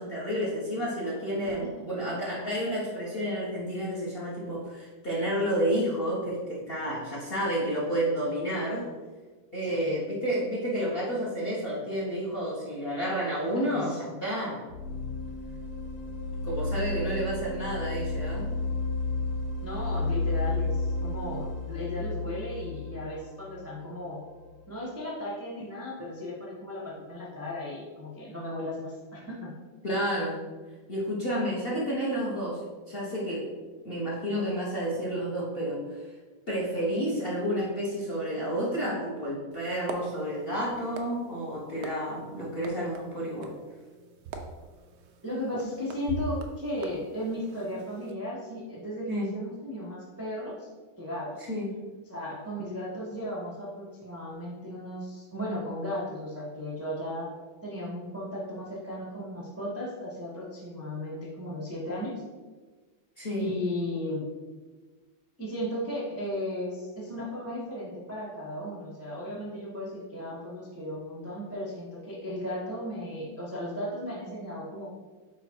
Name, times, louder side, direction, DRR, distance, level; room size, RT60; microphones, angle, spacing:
voice 1, 0.0-8.9 9.5-14.6 16.4-18.5 20.2-20.3 29.8-30.4 30.9-32.6 32.9-33.5 33.8-35.8 36.5-43.5 49.1-49.3 51.5-51.7 63.2-63.5, equal, 35° left, -5 dB, 1.1 m, -30 dB
voice 2, 9.6-10.0 13.5-14.0 19.6-24.2 24.7-29.5 45.2-50.7 51.0-51.5 52.1-57.3 57.6-62.1 63.4-64.3 65.4-74.9, left 1 dB, 10° right, -5 dB, 0.7 m, -35 dB
sound 1, 14.7-24.5, left 2 dB, 60° left, 1.0 m, -32 dB
sound 2, 39.5-48.1, right 4 dB, 75° right, 0.8 m, -43 dB
5.0 x 4.6 x 4.5 m, 1.3 s
omnidirectional pair, 2.3 m